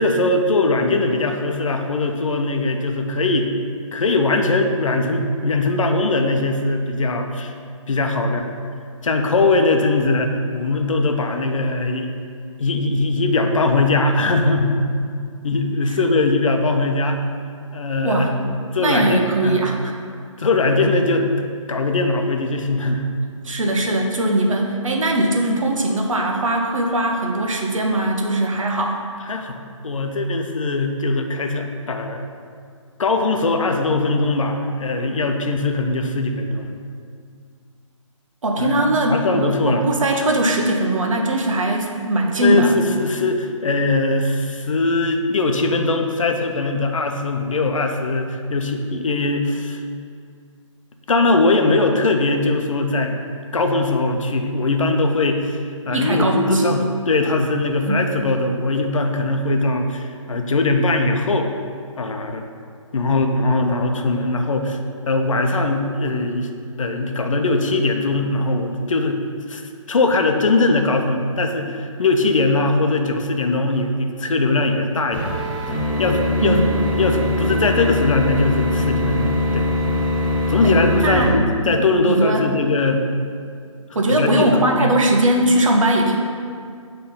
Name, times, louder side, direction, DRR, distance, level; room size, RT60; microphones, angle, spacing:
voice 1, 0.0-3.5 3.9-7.5 7.9-8.5 9.0-12.1 12.6-15.0 15.4-17.2 17.7-19.6 20.4-21.3 21.7-23.1 29.3-29.6 29.8-32.2 33.0-36.7 38.6-39.8 42.4-49.8 51.1-53.2 53.5-61.5 62.0-62.4 62.9-64.8 65.1-66.5 66.8-69.2 69.5-69.6 69.9-75.4 76.0-76.7 77.0-79.7 80.5-83.0 84.1-84.9, left 2 dB, 75° left, 4 dB, 0.7 m, -20 dB
voice 2, 18.8-19.9 23.4-29.0 38.4-42.7 55.9-56.8 57.9-58.1 76.4-76.7 80.6-81.7 82.0-82.4 83.9-86.2, right 1 dB, 75° right, 1 dB, 1.0 m, -20 dB
sound 1, 75.1-81.3, left 1 dB, 20° left, 0.9 m, -22 dB
7.3 x 3.3 x 4.0 m, 2.2 s
hypercardioid pair, 165°, 17 cm